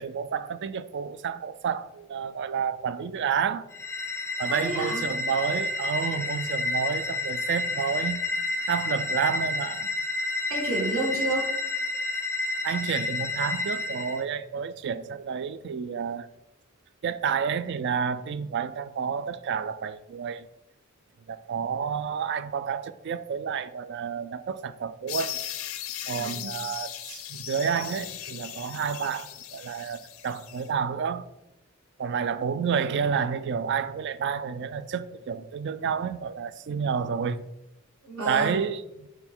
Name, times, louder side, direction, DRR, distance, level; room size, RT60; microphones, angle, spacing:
voice 1, 0.0-3.6 4.4-8.2 8.7-9.9 12.6-16.3 17.0-20.5 21.3-25.4 26.0-31.2 32.0-37.4 38.2-38.8, right 7 dB, 55° right, 0.3 m, -30 dB
sound 1, 3.7-14.2, left 2 dB, 15° left, 0.4 m, -30 dB
voice 2, 4.5-5.0 10.5-11.5 26.1-26.6 38.0-38.6, right 2 dB, 75° right, 2.2 m, -30 dB
sound 2, 25.1-30.7, left 11 dB, 85° left, 0.6 m, -38 dB
5.9 x 3.9 x 4.5 m
head